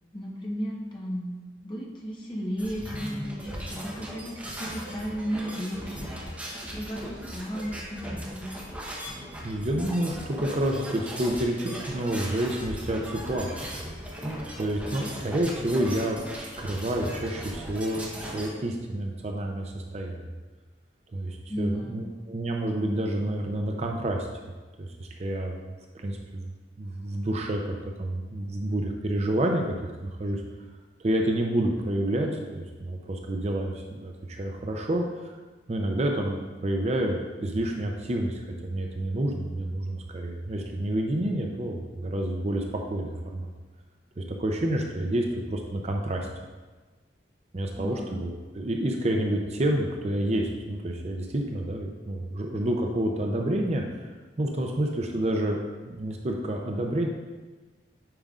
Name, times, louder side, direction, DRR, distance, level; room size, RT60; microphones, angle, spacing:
voice 1, 0.1-6.1 6.7-8.5 14.9-15.1 21.5-22.0 47.8-48.0, equal, 25° left, -3 dB, 1.1 m, -34 dB
sound 1, 2.6-18.5, equal, 10° right, 0.9 m, -38 dB
voice 2, 9.4-13.8 14.6-20.2 21.1-24.3 24.8-25.5 25.9-26.5 26.8-29.6 30.0-30.4 31.0-35.3 35.7-43.5 44.2-46.3 47.5-53.8 54.4-55.6 55.9-57.1, right 1 dB, 35° right, 2 dB, 0.5 m, -29 dB
8.8 x 5.2 x 2.4 m, 1.3 s
head